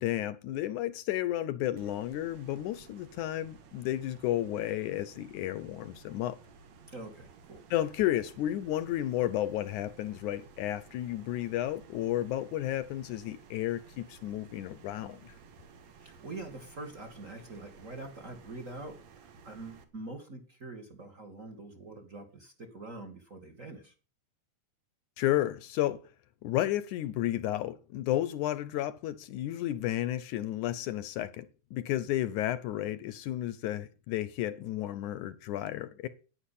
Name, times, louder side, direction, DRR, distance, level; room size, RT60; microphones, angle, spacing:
voice 1, 0.0-6.4 7.7-15.3 25.2-26.0 26.4-36.1, left 13 dB, 75° left, 2.1 m, -32 dB
sound 1, 1.8-19.8, right 5 dB, 60° right, 2.7 m, -55 dB
voice 2, 6.9-7.6 16.0-23.9, right 2 dB, 30° right, 1.9 m, -45 dB
10.0 x 10.0 x 8.3 m
omnidirectional pair, 3.8 m